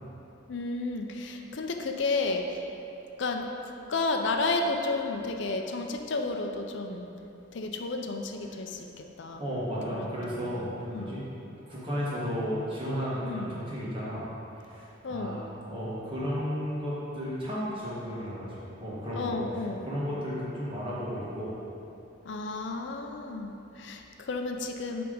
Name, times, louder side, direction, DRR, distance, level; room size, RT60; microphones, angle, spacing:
voice 1, 0.5-2.6 3.2-7.1 7.5-8.9 9.2-9.4 9.9-10.1 10.4-10.6 10.9-11.2 13.2-13.5 15.0-15.4 19.1-19.8 22.2-25.0, left 3 dB, 65° left, 4 dB, 0.5 m, -32 dB
voice 2, 9.4-11.2 11.7-14.3 14.6-15.4 15.7-19.3 19.8-21.5, equal, 25° right, -8 dB, 1.6 m, -33 dB
8.2 x 3.5 x 5.3 m, 2.9 s
head